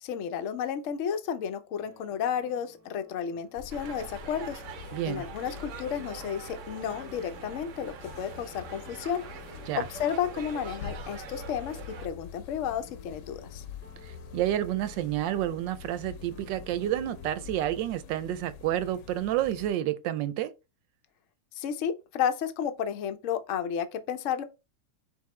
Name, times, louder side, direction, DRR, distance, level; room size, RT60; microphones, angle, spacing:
voice 1, 0.0-9.2 9.9-13.6 21.6-24.4, left 8 dB, 65° left, 0.8 m, -32 dB
sound 1, 1.8-17.8, left 2 dB, 15° left, 0.5 m, -55 dB
sound 2, 3.5-19.7, left 7 dB, 80° left, 1.3 m, -46 dB
sound 3, 3.7-12.1, right 6 dB, 65° right, 0.8 m, -44 dB
voice 2, 4.9-5.3 9.7-9.8 14.0-20.5, right 12 dB, 90° right, 1.3 m, -30 dB
4.7 x 3.5 x 3.2 m
omnidirectional pair, 1.9 m